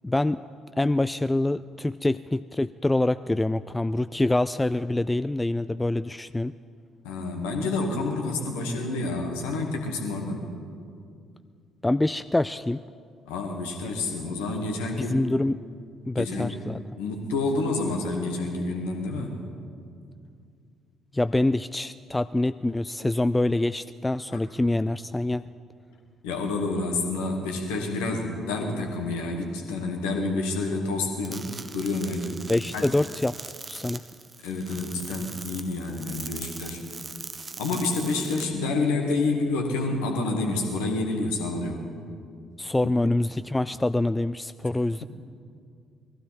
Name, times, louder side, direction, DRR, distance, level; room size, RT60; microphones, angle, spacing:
voice 1, 0.0-0.4 0.8-6.5 11.8-12.8 15.0-15.6 16.1-16.8 21.1-25.4 32.5-33.4 33.7-34.0 42.6-45.0, left 2 dB, 15° left, 14 dB, 0.3 m, -25 dB
voice 2, 7.0-10.4 13.3-15.2 16.2-16.6 17.0-19.4 24.3-24.4 26.2-32.4 32.7-32.8 34.4-36.8 37.6-41.9 42.8-43.0, left 3 dB, 70° left, 2 dB, 1.9 m, -28 dB
sound 1, 31.2-38.4, right 4 dB, 30° right, 0.9 m, -41 dB
21.0 x 15.0 x 4.4 m, 2.3 s
figure-of-eight pair, 45°, 0 cm